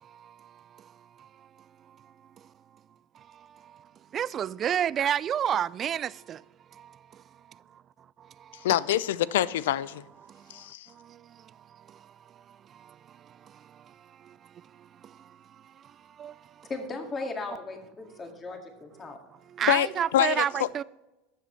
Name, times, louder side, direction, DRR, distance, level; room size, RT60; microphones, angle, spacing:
voice 1, 0.0-0.9 1.2-1.5 1.9-2.1 3.2-3.9 4.1-6.4 6.7-7.2 8.2-8.7 10.2-12.1 12.5-15.4 15.6-16.7 19.5-20.8, right 9 dB, 35° right, 0.3 m, -33 dB
voice 2, 8.5-10.0 10.5-10.9 19.7-20.7, left 12 dB, 80° left, 0.4 m, -26 dB
voice 3, 16.7-19.2, left 3 dB, 30° left, 2.1 m, -37 dB
13.0 x 7.5 x 3.2 m
hypercardioid pair, 100°, 0 cm